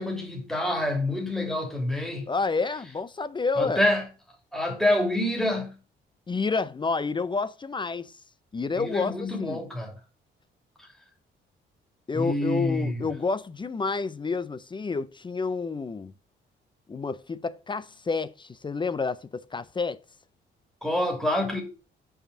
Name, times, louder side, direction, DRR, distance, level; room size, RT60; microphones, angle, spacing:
voice 1, 0.0-2.3 3.6-4.0 4.5-5.7 8.8-9.9 12.1-13.0 20.8-21.6, left 1 dB, ahead, 2.6 m, -27 dB
voice 2, 2.3-3.8 6.3-8.1 8.5-9.1 9.4-9.6 12.1-16.1 16.9-20.0, left 4 dB, 25° left, 0.5 m, -29 dB
5.1 x 5.0 x 6.2 m
cardioid pair, 90°, 20 cm